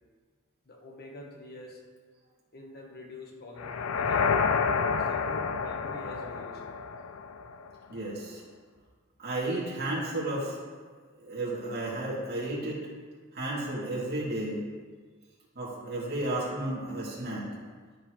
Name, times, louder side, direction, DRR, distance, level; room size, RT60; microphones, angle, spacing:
voice 1, 0.6-1.8 2.5-4.4 4.9-6.6, left 1 dB, 50° left, 1 dB, 1.3 m, -46 dB
sound 1, 3.6-7.7, left 5 dB, 80° left, 0.5 m, -29 dB
voice 2, 7.9-8.4 9.2-10.6 11.1-12.8 13.3-14.6 15.5-17.5, right 1 dB, 50° right, -7 dB, 2.8 m, -33 dB
13.0 x 6.8 x 3.2 m, 1.5 s
head